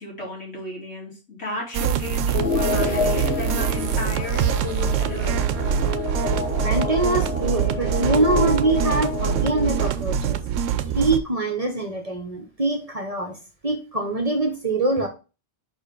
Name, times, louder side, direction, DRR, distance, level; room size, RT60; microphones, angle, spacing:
voice 1, 0.0-5.4, left 2 dB, 80° left, -3 dB, 3.1 m, -33 dB
sound 1, 1.7-11.2, right 9 dB, 90° right, 1.0 m, -24 dB
sound 2, 2.3-9.9, left 4 dB, 60° left, 1.3 m, -28 dB
voice 2, 6.6-10.4 10.7-13.4 13.6-15.1, right 2 dB, 35° right, 5 dB, 0.9 m, -24 dB
5.4 x 4.8 x 5.0 m, 0.32 s
omnidirectional pair, 1.2 m